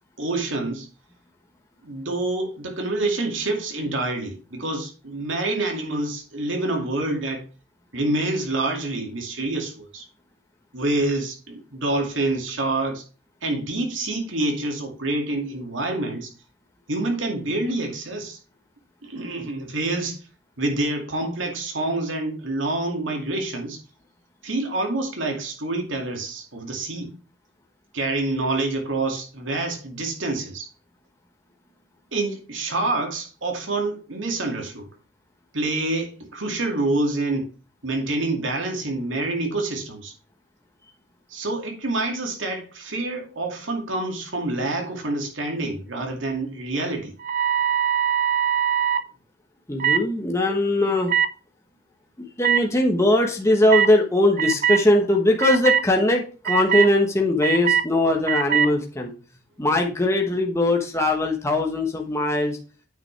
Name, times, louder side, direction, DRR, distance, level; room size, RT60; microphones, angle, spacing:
voice 1, 0.2-0.9 1.8-7.4 7.9-10.1 10.7-13.0 13.4-16.3 16.9-18.4 19.0-20.2 20.6-23.8 24.4-27.1 27.9-30.7 32.1-34.9 35.5-37.5 37.8-40.1 41.3-47.1, right 2 dB, 80° right, 2.3 m, -27 dB
sound 1, 47.2-49.0 49.8-50.0 51.1-51.3 52.4-52.6 53.7-53.9 54.4-54.8 55.4-55.8 56.5-56.9 57.4-57.8 58.3-58.7, right 9 dB, 45° right, 0.5 m, -21 dB
voice 2, 49.7-51.1 52.2-59.1 59.6-62.6, left 1 dB, 15° left, 1.2 m, -20 dB
9.2 x 6.0 x 3.4 m
head